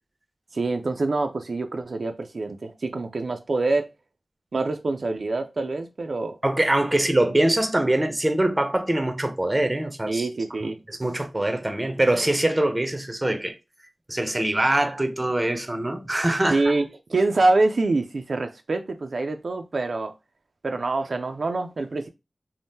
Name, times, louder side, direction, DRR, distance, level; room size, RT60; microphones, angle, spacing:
voice 1, 0.5-3.9 4.5-6.4 6.9-7.0 10.1-10.8 16.5-20.1 20.6-22.1, right 3 dB, 75° right, 0.3 m, -25 dB
voice 2, 6.4-10.3 10.6-13.6 14.1-16.6, right 1 dB, 25° right, 0.5 m, -23 dB
2.7 x 2.0 x 3.4 m
wide cardioid pair, 70°, 0 cm